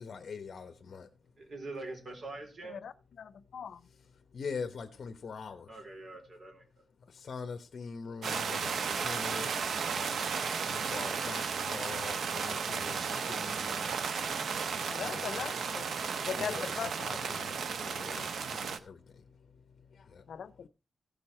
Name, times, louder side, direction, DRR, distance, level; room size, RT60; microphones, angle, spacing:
voice 1, 0.0-1.5 3.6-5.8 7.0-15.5 15.9-20.7, left 5 dB, 50° left, 1.0 m, -45 dB
voice 2, 1.4-2.9 5.7-6.6, right 2 dB, 45° right, 3.7 m, -44 dB
voice 3, 3.2-3.8 14.9-16.9 20.3-20.7, left 7 dB, 75° left, 0.7 m, -39 dB
sound 1, 8.2-18.8, right 6 dB, 75° right, 0.9 m, -34 dB
15.5 x 6.9 x 4.3 m
wide cardioid pair, 175°, 0 cm